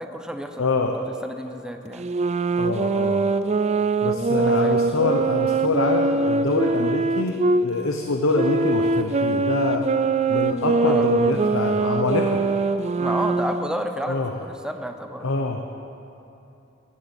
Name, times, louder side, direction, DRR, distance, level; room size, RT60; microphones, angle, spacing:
voice 1, 0.0-0.7 0.9-2.1 4.4-4.7 6.7-6.9 10.8-11.1 13.0-15.3, equal, 5° right, 5 dB, 0.8 m, -31 dB
voice 2, 0.6-1.0 2.6-3.2 4.0-9.9 10.3-12.4 14.1-14.3 15.2-15.6, left 3 dB, 85° left, 4 dB, 0.9 m, -25 dB
sound 1, 1.9-7.6 8.3-13.7, right 3 dB, 35° right, 0.5 m, -22 dB
15.5 x 10.5 x 8.3 m, 2.8 s
head